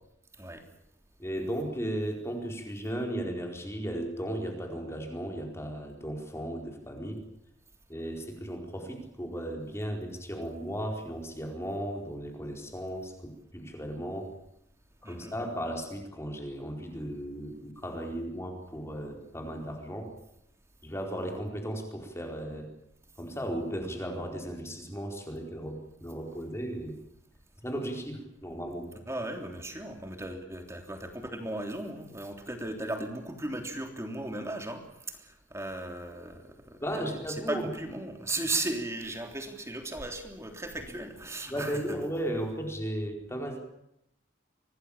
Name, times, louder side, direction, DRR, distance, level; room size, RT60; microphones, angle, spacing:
voice 1, 1.2-7.2 7.9-14.3 15.0-20.1 20.8-22.7 23.2-27.0 27.6-28.9 36.8-37.7 41.5-43.6, equal, 15° left, 2 dB, 4.6 m, -35 dB
voice 2, 15.0-15.4 29.1-34.8 35.1-42.0, right 2 dB, 15° right, 4 dB, 3.3 m, -36 dB
25.5 x 19.0 x 8.8 m, 0.80 s
head